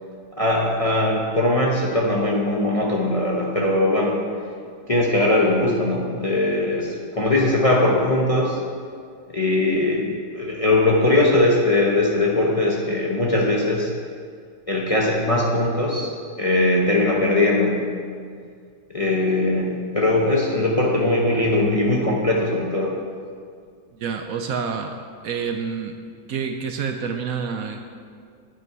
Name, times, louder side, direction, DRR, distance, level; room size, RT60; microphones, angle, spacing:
voice 1, 0.4-4.2 4.9-8.6 9.3-10.0 10.3-13.9 14.7-16.1 16.4-17.8 18.9-22.9, left 2 dB, 30° left, -2 dB, 0.7 m, -20 dB
voice 2, 23.9-25.0 25.2-25.9 26.3-27.9, right 6 dB, 70° right, 6 dB, 0.9 m, -28 dB
8.6 x 8.6 x 4.6 m, 2.1 s
omnidirectional pair, 1.7 m